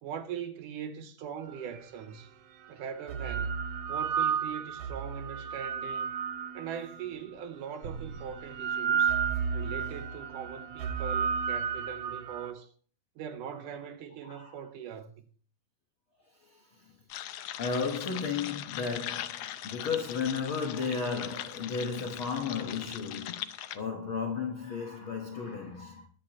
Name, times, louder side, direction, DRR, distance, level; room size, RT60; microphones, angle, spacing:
voice 1, 0.0-2.3 2.7-3.6 3.9-6.1 6.5-9.2 9.5-12.7 13.2-15.3, right 8 dB, 70° right, 2.3 m, -41 dB
sound 1, 1.8-1.9 2.8-7.1 7.8-12.5, right 7 dB, 90° right, 1.3 m, -32 dB
voice 2, 14.2-14.5 16.5-16.9 17.6-26.1, left 5 dB, 65° left, 1.2 m, -34 dB
sound 2, 17.1-23.8, left 12 dB, 90° left, 1.6 m, -40 dB
21.0 x 8.5 x 2.9 m
omnidirectional pair, 4.2 m